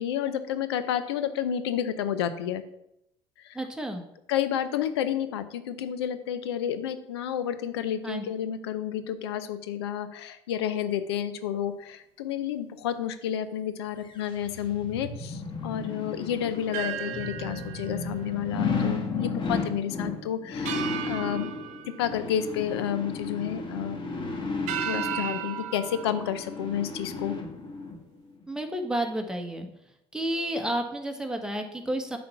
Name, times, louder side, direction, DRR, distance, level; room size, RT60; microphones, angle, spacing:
voice 1, 0.0-2.6 3.4-3.6 4.3-21.5 22.0-24.0 24.8-27.3, left 9 dB, 90° left, 12 dB, 0.6 m, -30 dB
voice 2, 3.5-4.0 8.0-8.2 28.5-29.7 30.1-32.2, right 1 dB, 5° right, 4 dB, 1.4 m, -31 dB
sound 1, 14.1-28.0 28.4-28.5, left 4 dB, 40° left, 1.7 m, -34 dB
sound 2, 16.7-19.2 19.5-19.7 20.6-23.2 23.6-24.1 24.7-27.5, right 10 dB, 65° right, 0.8 m, -37 dB
8.4 x 4.3 x 5.7 m, 0.80 s
hypercardioid pair, 70°, 13 cm